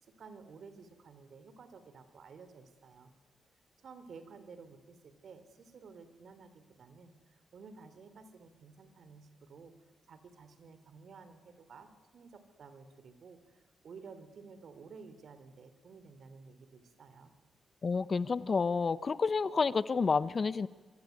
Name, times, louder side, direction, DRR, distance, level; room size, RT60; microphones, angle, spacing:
voice 1, 0.0-3.1 3.8-9.7 10.1-17.3, right 5 dB, 70° right, 11 dB, 3.5 m, -53 dB
voice 2, 17.8-20.7, left 4 dB, 50° left, 16 dB, 1.0 m, -29 dB
25.5 x 24.5 x 9.5 m, 1.4 s
cardioid pair, 60°, 0 cm